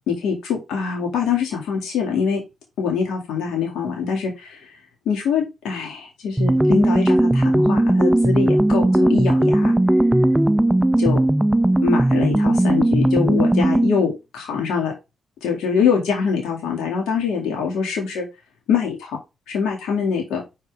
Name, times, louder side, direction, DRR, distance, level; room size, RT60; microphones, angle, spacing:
voice 1, 0.1-2.4 2.8-4.6 5.1-9.7 11.0-11.2 11.8-14.9 15.4-18.3 18.7-19.2 19.5-20.4, left 6 dB, 80° left, 0 dB, 2.1 m, -23 dB
sound 1, 6.4-14.0, right 1 dB, 15° right, 0.5 m, -17 dB
5.2 x 4.3 x 4.8 m, 0.24 s
supercardioid pair, 45°, 0 cm